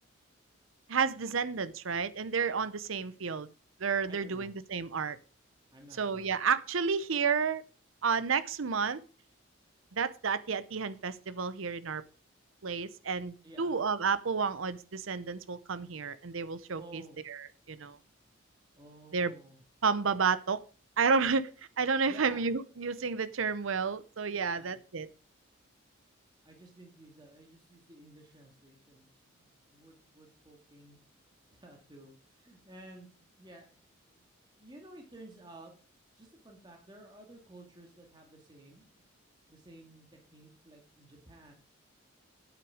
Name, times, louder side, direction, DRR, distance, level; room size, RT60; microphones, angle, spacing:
voice 1, 0.9-3.5 3.8-5.2 6.0-7.6 8.0-9.0 9.9-12.0 12.6-17.0 17.3-17.4 17.7-18.0 19.1-19.3 19.8-20.6 21.0-21.5 21.8-25.1, right 5 dB, 75° right, 15 dB, 0.7 m, -31 dB
voice 2, 4.1-4.5 5.7-6.4 13.4-13.8 16.8-17.2 18.8-19.6 22.1-22.5 24.3-24.8 26.4-29.1 29.4-31.0 31.5-33.1 33.4-33.8 34.1-34.3 34.5-35.7 36.2-38.9 39.5-41.5, right 1 dB, 20° right, 1 dB, 1.9 m, -53 dB
9.1 x 8.3 x 4.9 m, 0.37 s
head